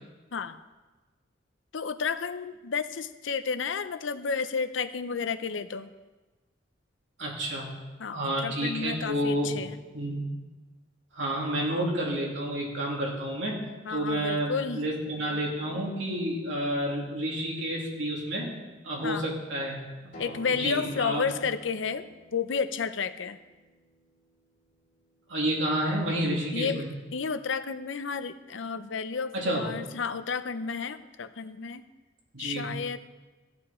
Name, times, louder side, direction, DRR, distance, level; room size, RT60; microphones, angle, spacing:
voice 1, 1.7-5.9 8.0-9.8 13.8-14.8 19.0-19.2 20.2-22.1 22.3-23.4 26.5-26.8 27.1-31.8 32.4-33.0, left 5 dB, 85° left, 12 dB, 0.6 m, -31 dB
voice 2, 7.2-7.7 8.1-9.6 9.9-10.3 11.2-13.6 13.9-18.5 18.8-19.8 20.0-20.1 20.6-21.3 25.3-26.8 29.3-29.7 32.3-32.7, right 1 dB, 80° right, -3 dB, 2.8 m, -30 dB
Acoustic guitar, 20.1-25.3, right 1 dB, 45° left, 3.2 m, -50 dB
15.0 x 8.6 x 4.3 m, 1.2 s
head